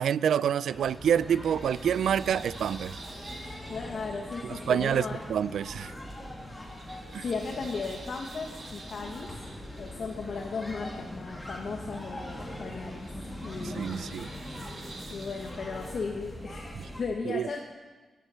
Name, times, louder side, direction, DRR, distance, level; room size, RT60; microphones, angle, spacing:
voice 1, 0.0-3.0 4.4-5.9 7.1-7.2 13.7-14.3 16.7-16.8 17.3-17.6, right 8 dB, 85° right, 0.3 m, -27 dB
sound 1, 0.7-17.0, left 1 dB, 10° left, 2.1 m, -42 dB
sound 2, 1.0-15.6, right 3 dB, 45° right, 1.8 m, -50 dB
voice 2, 3.7-5.2 6.5-6.8 7.2-9.3 9.8-13.1 13.4-14.3 15.1-17.6, left 4 dB, 50° left, 1.3 m, -36 dB
17.5 x 10.5 x 5.7 m
wide cardioid pair, 165°, 0 cm